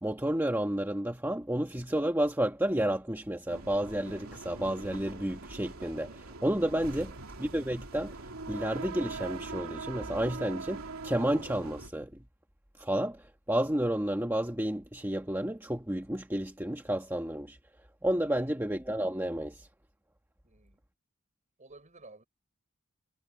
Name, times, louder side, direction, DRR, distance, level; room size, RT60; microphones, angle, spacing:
voice 1, 0.0-8.1 8.5-12.1 12.8-17.6 18.0-19.7, right 1 dB, 10° right, 1.2 m, -31 dB
sound 1, 3.5-11.9, right 3 dB, 90° right, 2.9 m, -42 dB
voice 2, 18.3-18.6 20.4-20.8 21.6-22.3, right 2 dB, 35° right, 5.8 m, -55 dB
head